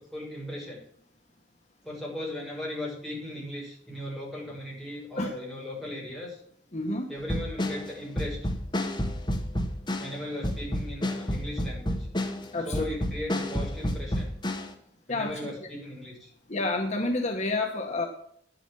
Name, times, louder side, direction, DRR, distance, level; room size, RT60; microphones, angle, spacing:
voice 1, 0.1-0.8 1.8-6.4 7.1-8.4 10.0-12.1 12.5-14.3 15.1-16.3, left 1 dB, ahead, -5 dB, 6.1 m, -37 dB
voice 2, 6.7-7.1 12.5-12.9 15.1-15.4 16.5-18.1, left 2 dB, 40° left, 3 dB, 1.3 m, -29 dB
sound 1, 7.2-14.7, left 1 dB, 25° left, 1.6 m, -30 dB
11.0 x 8.0 x 6.0 m, 0.65 s
head